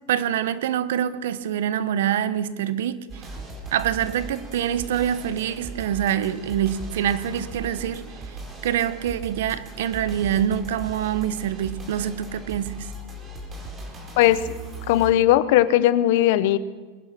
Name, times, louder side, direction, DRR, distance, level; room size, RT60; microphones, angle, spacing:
voice 1, 0.1-3.2 3.7-8.4 8.6-12.9, right 10 dB, 80° right, 0.9 m, -25 dB
sound 1, 3.1-15.1, right 2 dB, 25° right, 3.9 m, -38 dB
voice 2, 14.2-14.5 14.9-16.6, left 13 dB, 65° left, 0.8 m, -18 dB
21.5 x 10.5 x 6.0 m
supercardioid pair, 120°, 0 cm